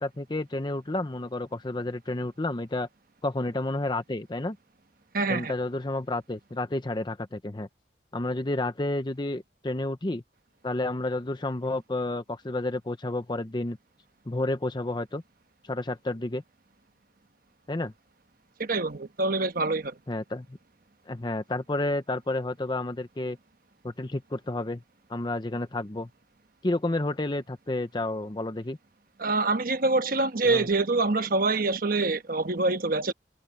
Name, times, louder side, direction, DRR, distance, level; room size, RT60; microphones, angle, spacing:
voice 1, 0.0-2.9 3.2-4.6 5.3-7.7 8.1-10.2 10.6-13.8 14.3-15.2 15.6-16.4 17.7-17.9 20.1-20.5 21.1-23.4 23.8-24.8 25.1-26.1 26.6-28.8 30.4-30.7, left 2 dB, 25° left, 0.7 m, -30 dB
voice 2, 5.1-5.5 18.6-19.9 29.2-33.1, right 3 dB, 55° right, 1.2 m, -25 dB
head